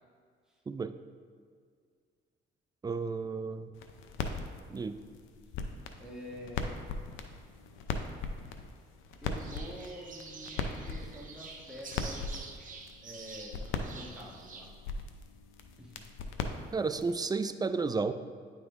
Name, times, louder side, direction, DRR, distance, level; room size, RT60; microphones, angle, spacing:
voice 1, 2.8-3.7 4.7-5.0 16.7-18.1, right 4 dB, 20° right, 11 dB, 0.3 m, -32 dB
sound 1, 3.7-17.2, left 4 dB, 85° left, 0.5 m, -40 dB
voice 2, 6.0-6.7 9.2-12.5 13.0-14.7 15.8-16.0, equal, 5° right, -4 dB, 1.3 m, -47 dB
sound 2, 9.4-14.7, right 4 dB, 40° right, 0.8 m, -48 dB
9.4 x 3.7 x 3.5 m, 2.1 s
cardioid pair, 90°, 20 cm